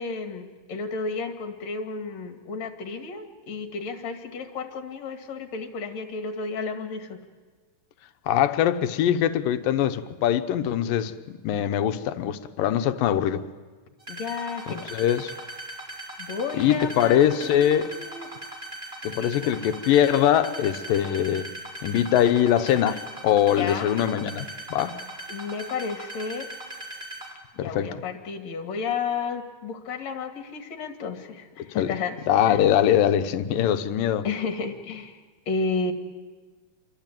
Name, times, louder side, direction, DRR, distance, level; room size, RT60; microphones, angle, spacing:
voice 1, 0.0-7.2 14.1-14.9 16.2-18.3 19.2-19.5 23.5-24.0 25.3-26.5 27.5-32.2 32.5-32.7 34.2-35.2 35.5-35.9, left 4 dB, 55° left, 3.2 m, -32 dB
voice 2, 8.3-13.5 14.9-15.3 16.6-17.9 19.0-21.5 21.8-25.0 27.6-28.0 31.8-32.0 32.3-34.3, left 10 dB, 90° left, 2.7 m, -22 dB
sound 1, 14.0-27.3, right 1 dB, 15° right, 4.9 m, -39 dB
27.5 x 23.0 x 9.0 m
omnidirectional pair, 3.8 m